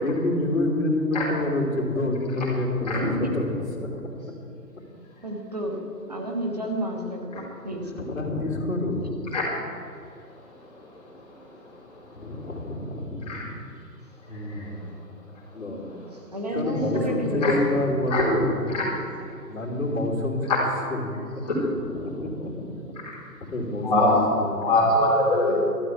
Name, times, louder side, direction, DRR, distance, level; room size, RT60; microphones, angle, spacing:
voice 1, 0.0-4.2 7.7-9.2 12.1-13.5 14.3-15.1 15.5-16.0 16.5-18.9 19.5-20.5 20.9-21.1 21.3-21.4 21.8-23.0 23.5-24.7, left 1 dB, 55° left, -2 dB, 3.4 m, -28 dB
voice 2, 5.2-5.8 6.1-8.1 16.3-17.5, right 1 dB, 25° right, 1 dB, 1.2 m, -31 dB
voice 3, 23.8-24.2 24.6-25.6, left 2 dB, 25° left, -8 dB, 4.2 m, -22 dB
13.5 x 7.7 x 9.4 m, 2.5 s
figure-of-eight pair, 170°, 49 cm